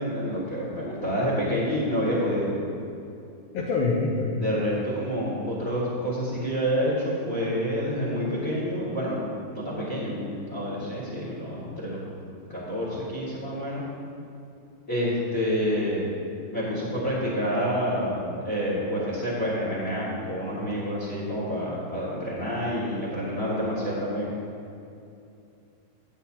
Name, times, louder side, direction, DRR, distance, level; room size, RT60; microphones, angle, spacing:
voice 1, 0.0-2.6 4.4-9.2 9.5-12.0 12.5-13.8 14.9-16.1 16.5-24.3, equal, 40° left, -8 dB, 1.1 m, -28 dB
voice 2, 3.5-4.4, left 3 dB, 85° left, -2 dB, 2.0 m, -25 dB
13.5 x 8.8 x 2.9 m, 2.7 s
omnidirectional pair, 5.2 m